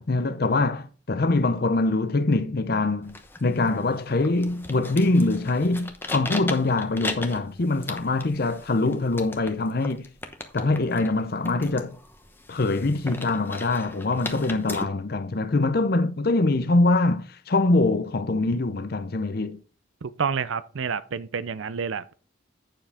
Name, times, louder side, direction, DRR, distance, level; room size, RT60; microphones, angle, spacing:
voice 1, 0.0-10.1 10.5-12.0 12.5-19.6, left 2 dB, 50° left, 0.6 m, -24 dB
sound 1, 3.0-14.8, left 2 dB, 10° left, 1.0 m, -38 dB
voice 2, 20.0-22.1, right 6 dB, 75° right, 0.5 m, -29 dB
8.9 x 7.2 x 3.5 m
head